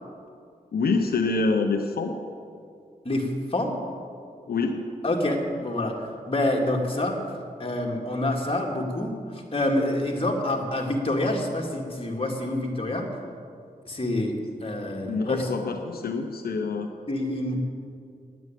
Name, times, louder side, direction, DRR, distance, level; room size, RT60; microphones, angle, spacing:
voice 1, 0.7-2.1 4.5-4.8 15.0-16.9, left 4 dB, 90° left, 4 dB, 0.8 m, -26 dB
voice 2, 3.0-3.7 5.0-6.0 6.3-7.2 7.6-13.1 13.9-15.5 17.1-17.6, left 1 dB, 35° left, 0 dB, 2.3 m, -27 dB
9.5 x 9.3 x 9.1 m, 2.3 s
cardioid pair, 55°, 16 cm